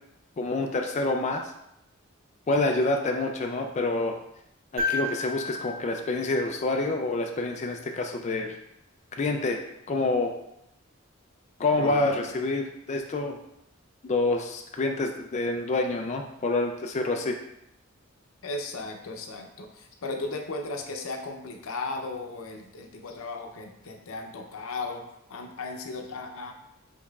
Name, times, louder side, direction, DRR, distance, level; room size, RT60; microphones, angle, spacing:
voice 1, 0.4-1.5 2.5-4.2 4.7-8.6 9.1-9.6 9.9-10.3 11.6-13.4 14.0-17.4, left 2 dB, 35° left, 3 dB, 0.4 m, -27 dB
sound 1, 4.8-7.1 9.1-9.2, left 3 dB, 65° right, 1.5 m, -33 dB
voice 2, 11.8-12.3 18.4-26.5, left 3 dB, 85° left, 3 dB, 0.6 m, -36 dB
5.2 x 4.1 x 2.4 m, 0.80 s
head